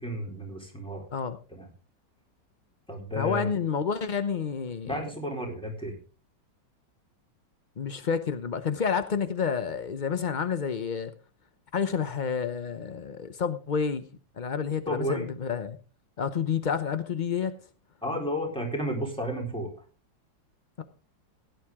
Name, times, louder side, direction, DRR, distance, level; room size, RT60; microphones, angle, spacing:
voice 1, 0.0-1.1 1.5-1.7 2.9-3.5 4.9-5.9 14.9-15.3 18.0-19.7, equal, 5° left, 4.0 m, -32 dB
voice 2, 3.2-5.0 7.8-11.1 11.7-14.0 14.4-15.8 16.2-17.6 20.8-20.9, left 6 dB, 80° left, 0.4 m, -29 dB
16.0 x 10.5 x 3.6 m
omnidirectional pair, 2.0 m